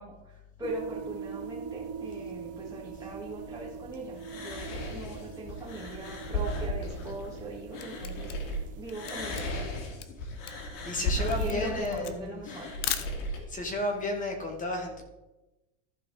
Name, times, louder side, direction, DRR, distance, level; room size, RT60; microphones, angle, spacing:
voice 1, 0.0-9.5 11.2-12.7, right 2 dB, 10° right, -7 dB, 2.1 m, -41 dB
sound 1, 0.6-9.5, right 7 dB, 40° right, 0.6 m, -43 dB
sound 2, 4.2-8.6 8.9-13.4, left 1 dB, 90° left, 2.5 m, -35 dB
Camera, 7.4-13.6, left 12 dB, 60° left, 0.9 m, -39 dB
voice 2, 10.8-12.4 13.5-15.0, left 2 dB, 20° left, 2 dB, 2.2 m, -32 dB
14.5 x 5.1 x 4.2 m, 1.0 s
supercardioid pair, 145°, 39 cm